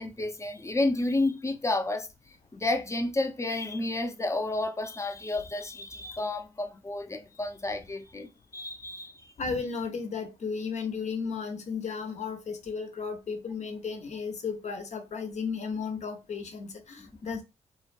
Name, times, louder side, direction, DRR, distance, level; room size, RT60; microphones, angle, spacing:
voice 1, 0.0-9.3 17.0-17.1, left 2 dB, 20° left, 0.6 m, -31 dB
voice 2, 9.4-17.4, left 5 dB, 60° left, 0.7 m, -34 dB
2.4 x 2.1 x 2.5 m
supercardioid pair, 45°, 14 cm